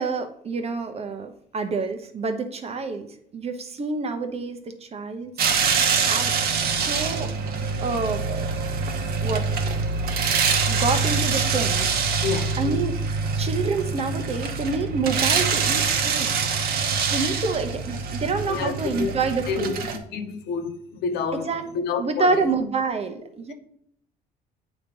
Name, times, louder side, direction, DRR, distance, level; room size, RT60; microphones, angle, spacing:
voice 1, 0.0-5.3 5.9-7.3 7.8-8.5 9.2-9.5 10.7-12.0 12.6-13.0 13.4-16.3 17.1-19.7 21.5-21.6 22.0-23.5, right 4 dB, 40° right, 0.9 m, -28 dB
sound 1, 5.4-20.0, right 5 dB, 65° right, 1.0 m, -25 dB
voice 2, 12.2-12.6 18.5-19.1 19.5-22.5, left 5 dB, 75° left, 0.9 m, -29 dB
8.4 x 3.0 x 5.4 m
cardioid pair, 110°, 17 cm